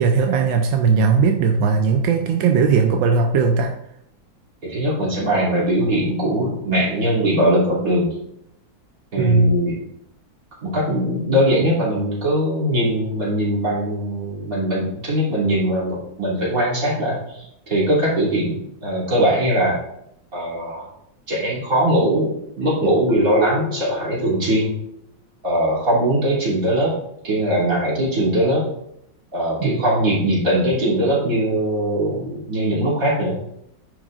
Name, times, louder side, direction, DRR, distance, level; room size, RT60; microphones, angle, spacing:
voice 1, 0.0-3.7 9.2-9.5 29.6-29.8, right 5 dB, 85° right, 4 dB, 1.4 m, -18 dB
voice 2, 4.7-8.1 9.1-9.8 10.6-19.8 20.3-20.9 21.3-24.7 25.4-26.9 27.2-28.7 29.3-33.4, right 1 dB, 45° right, -7 dB, 3.4 m, -21 dB
Marimba xylophone, 23.1-24.8, left 3 dB, 15° left, 0.4 m, -33 dB
10.0 x 6.2 x 2.5 m, 0.77 s
omnidirectional pair, 2.0 m